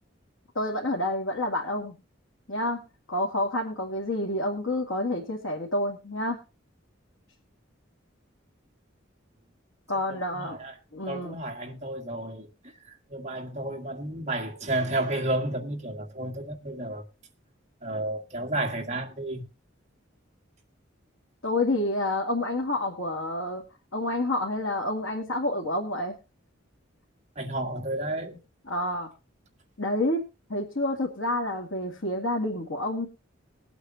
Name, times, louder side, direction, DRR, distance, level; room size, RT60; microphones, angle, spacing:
voice 1, 0.5-2.0 2.5-2.8 3.1-6.4 9.9-10.6 10.9-11.4 21.4-23.7 23.9-26.2 28.7-29.1 29.8-30.2 30.5-33.1, left 1 dB, 85° left, 2.3 m, -28 dB
voice 2, 10.1-10.8 11.1-17.0 17.8-19.5 27.4-28.4, right 1 dB, 35° right, 1.8 m, -32 dB
21.5 x 8.3 x 2.9 m
head